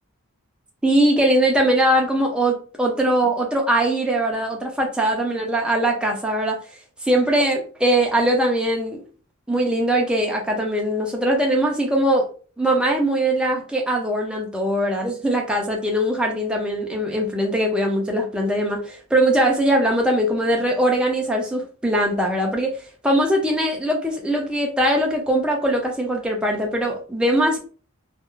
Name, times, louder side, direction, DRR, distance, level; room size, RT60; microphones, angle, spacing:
voice 1, 0.8-6.6 7.0-9.0 9.5-12.3 12.6-22.8 23.0-27.6, right 1 dB, 5° right, 0 dB, 0.3 m, -21 dB
2.3 x 2.0 x 2.9 m, 0.40 s
head